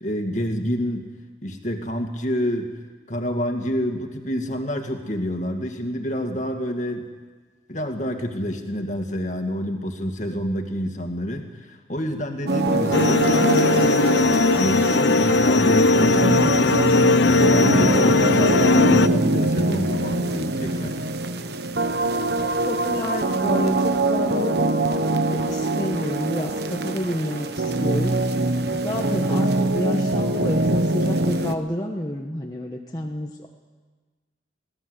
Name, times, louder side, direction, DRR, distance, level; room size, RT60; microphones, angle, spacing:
voice 1, 0.0-1.0 1.4-2.7 3.1-7.1 7.7-16.8 17.2-21.0, equal, 40° left, 4 dB, 2.2 m, -28 dB
sound 1, 12.5-31.6, right 2 dB, 55° right, 1.1 m, -23 dB
sound 2, 12.9-19.1, left 3 dB, 70° left, 0.7 m, -18 dB
voice 2, 22.4-24.8 25.3-33.5, left 1 dB, 20° left, 0 dB, 1.2 m, -30 dB
23.5 x 17.5 x 8.0 m, 1.4 s
head